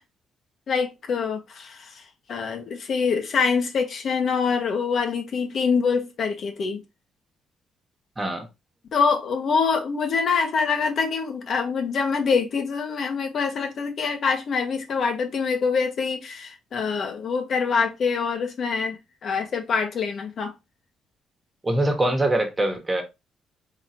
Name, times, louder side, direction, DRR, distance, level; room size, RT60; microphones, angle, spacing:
voice 1, 0.7-2.0 2.3-6.8 8.9-19.0 19.2-20.5, left 5 dB, 55° left, 1.2 m, -25 dB
voice 2, 21.6-23.0, right 1 dB, 20° right, 1.4 m, -23 dB
4.0 x 3.6 x 3.0 m
cardioid pair, 90°, 0 cm